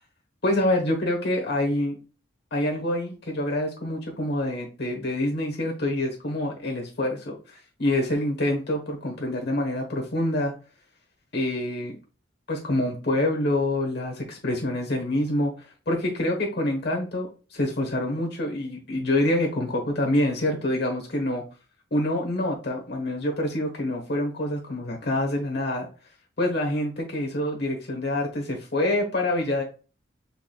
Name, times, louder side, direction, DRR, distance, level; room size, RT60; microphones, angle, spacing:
voice 1, 0.4-2.0 2.5-10.5 11.3-11.9 12.5-21.4 21.9-25.9 26.4-29.6, left 1 dB, 55° left, 1 dB, 1.2 m, -26 dB
5.9 x 3.7 x 2.3 m, 0.35 s
head